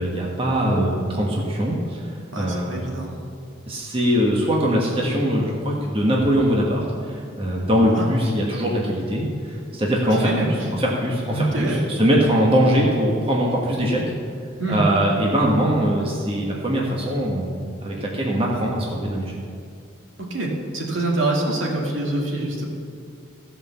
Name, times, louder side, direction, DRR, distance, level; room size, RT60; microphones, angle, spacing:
voice 1, 0.0-2.0 2.3-2.8 3.7-14.0 14.7-19.3, equal, 30° right, -3 dB, 1.4 m, -22 dB
voice 2, 2.3-3.1 7.9-8.1 10.2-10.7 11.3-11.9 14.6-14.9 20.3-22.6, right 2 dB, 70° right, -1 dB, 2.1 m, -25 dB
15.0 x 5.6 x 6.9 m, 2.3 s
head